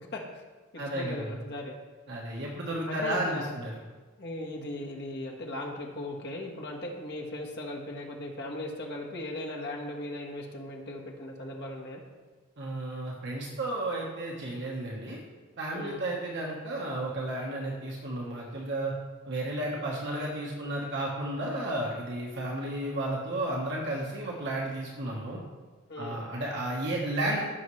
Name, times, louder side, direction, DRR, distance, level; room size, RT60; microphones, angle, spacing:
voice 1, 0.1-0.4 0.7-1.8 2.8-3.5 4.2-12.0 15.7-16.0 25.9-26.2, left 1 dB, 50° left, -1 dB, 1.5 m, -38 dB
voice 2, 0.8-1.3 2.1-3.7 12.6-15.2 15.6-18.9 19.2-25.4 26.0-27.5, right 1 dB, 55° right, -2 dB, 1.4 m, -33 dB
15.5 x 6.4 x 3.2 m, 1.3 s
head